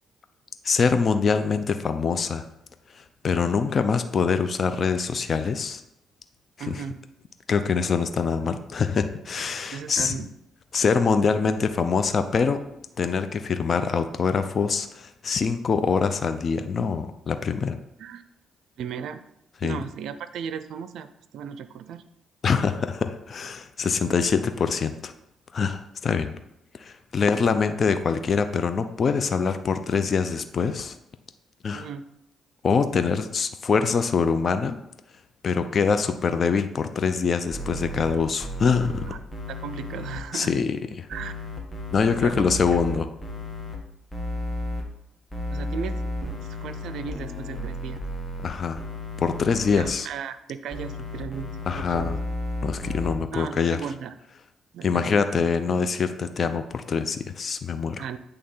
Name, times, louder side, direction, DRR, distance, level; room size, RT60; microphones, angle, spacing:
voice 1, 0.6-2.5 3.0-5.8 6.7-6.8 7.5-10.2 10.7-12.6 13.0-17.8 19.6-19.8 22.4-25.1 25.5-26.3 26.8-31.0 31.6-31.9 32.6-34.8 35.4-39.1 40.3-41.1 41.9-43.1 48.4-48.8 49.2-50.1 51.7-52.2 52.6-53.8 54.8-58.0, left 5 dB, 45° left, 9 dB, 0.6 m, -24 dB
voice 2, 6.6-7.0 9.7-10.3 18.0-18.2 18.8-19.2 19.6-22.0 31.7-32.0 39.1-39.2 39.5-40.5 41.1-41.3 42.1-42.5 45.5-46.3 46.6-48.0 49.7-52.2 53.3-54.1 54.7-55.2 58.0-58.2, right 7 dB, 75° right, 12 dB, 0.5 m, -36 dB
sound 1, 37.5-40.2 41.1-43.8 44.1-44.8 45.3-48.5 48.8-49.9 50.7-53.2, left 1 dB, 20° left, 1.5 m, -33 dB
8.7 x 3.4 x 5.5 m, 0.83 s
cardioid pair, 90°, 0 cm